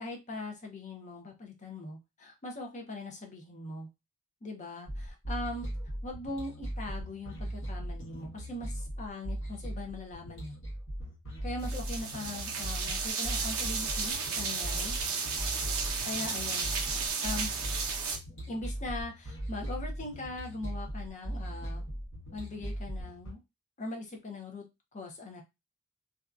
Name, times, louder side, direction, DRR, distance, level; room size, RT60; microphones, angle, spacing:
voice 1, 0.0-3.9 4.4-5.7 6.0-10.6 11.4-15.0 16.0-16.7 17.2-17.5 18.5-21.8 22.3-23.4 23.8-24.6 24.9-25.4, left 2 dB, 35° left, 3 dB, 0.7 m, -40 dB
sound 1, 4.9-23.3, right 1 dB, 60° left, 1.1 m, -38 dB
sound 2, 11.6-18.2, right 5 dB, 65° right, 0.6 m, -33 dB
2.7 x 2.3 x 2.3 m, 0.22 s
head